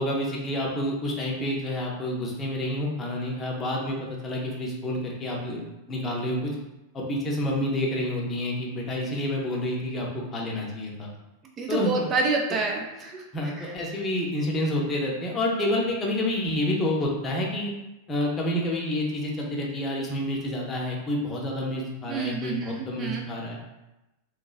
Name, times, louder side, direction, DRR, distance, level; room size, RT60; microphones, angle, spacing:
voice 1, 0.0-4.0 4.2-5.6 5.9-6.5 6.9-11.1 11.7-12.1 13.3-17.7 18.1-23.6, left 1 dB, 20° left, -2 dB, 0.6 m, -28 dB
voice 2, 11.6-13.2 22.1-23.2, right 3 dB, 30° right, 1 dB, 0.3 m, -28 dB
3.0 x 2.2 x 2.4 m, 0.97 s
figure-of-eight pair, 90°, 0 cm